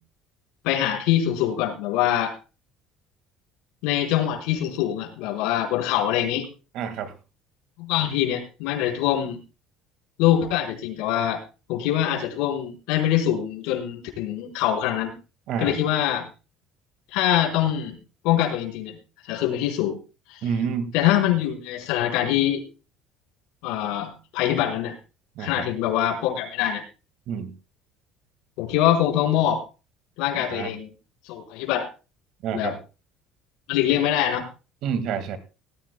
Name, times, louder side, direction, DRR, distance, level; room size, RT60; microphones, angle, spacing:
voice 1, 0.6-2.4 3.8-6.5 7.8-9.4 10.2-11.4 11.7-15.1 15.6-16.3 17.1-18.0 18.2-19.0 19.2-20.0 20.3-20.5 20.9-22.6 23.6-24.9 25.4-26.8 28.6-29.6 30.2-30.9 31.2-31.9 32.5-32.7 33.7-34.5, left 11 dB, 80° left, 2 dB, 4.5 m, -24 dB
voice 2, 6.7-7.1 15.5-15.8 20.4-20.9 25.4-25.6 27.3-27.5 30.3-30.7 32.4-32.8 34.8-35.4, right 7 dB, 55° right, 11 dB, 1.9 m, -28 dB
19.0 x 14.5 x 2.3 m, 0.31 s
cardioid pair, 160°, 0 cm